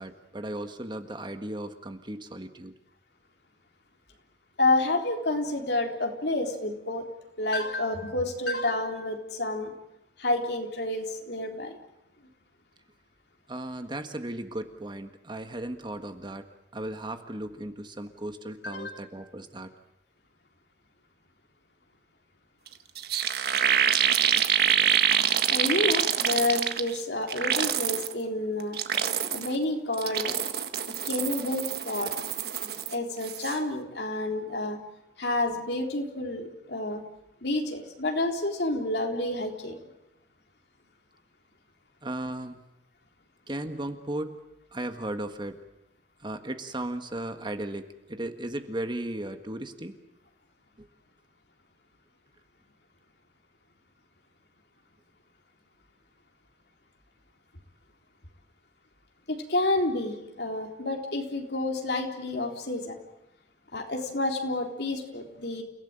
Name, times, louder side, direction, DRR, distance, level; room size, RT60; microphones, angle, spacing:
voice 1, 0.0-2.8 13.5-16.5 16.7-19.7 42.0-42.6 43.5-44.4 44.7-45.6 46.2-50.0 50.8-50.9, right 1 dB, 25° right, 8 dB, 1.6 m, -36 dB
voice 2, 4.6-7.0 7.4-9.7 10.2-11.8 18.6-19.0 25.5-28.8 29.3-30.3 31.0-32.1 32.6-34.8 35.2-37.0 37.4-39.8 59.3-63.0 63.7-65.6, left 2 dB, 65° left, 3 dB, 3.9 m, -29 dB
sound 1, 22.7-22.8 23.0-27.0 27.3-28.1 28.6-29.6 29.9-32.9 33.2-33.6, right 8 dB, 60° right, 1.6 m, -26 dB
30.0 x 16.5 x 9.0 m, 0.90 s
head